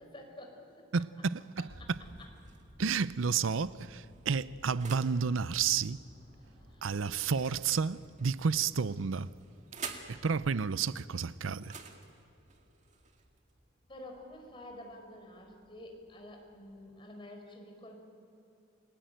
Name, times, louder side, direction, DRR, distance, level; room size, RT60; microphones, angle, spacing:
voice 1, 0.0-0.8 1.8-1.9 6.7-6.9 13.9-18.0, left 1 dB, 25° left, 4.8 m, -49 dB
voice 2, 0.9-1.7 2.8-6.0 6.8-9.3 10.1-11.7, right 5 dB, 85° right, 0.6 m, -31 dB
sound 1, 1.7-16.8, equal, 55° right, 6.3 m, -59 dB
sound 2, 2.0-2.8 3.6-5.2 7.2-8.3 9.2-10.2 11.5-13.5, right 5 dB, 35° right, 2.1 m, -48 dB
29.5 x 20.0 x 9.1 m
head